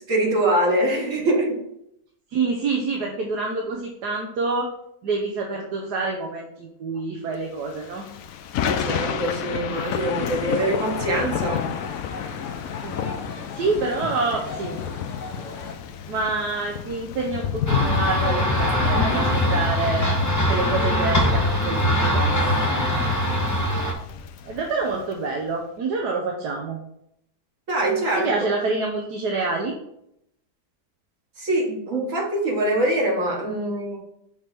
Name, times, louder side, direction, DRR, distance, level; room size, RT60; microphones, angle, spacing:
voice 1, 0.1-1.6 8.6-11.7 27.7-28.3 31.4-34.0, right 1 dB, 55° right, -1 dB, 1.7 m, -23 dB
voice 2, 2.3-4.7 5.0-8.0 12.8-13.1 13.5-14.8 16.1-20.1 20.5-22.6 24.5-26.8 28.2-29.7, right 3 dB, 75° right, 1 dB, 1.4 m, -27 dB
Thunder / Rain, 7.7-25.2, left 8 dB, 70° left, 0.9 m, -31 dB
sound 1, 10.0-15.7, left 4 dB, 55° left, 1.3 m, -36 dB
sound 2, 17.7-23.9, equal, 15° left, 0.6 m, -22 dB
6.5 x 3.4 x 5.9 m, 0.76 s
omnidirectional pair, 1.7 m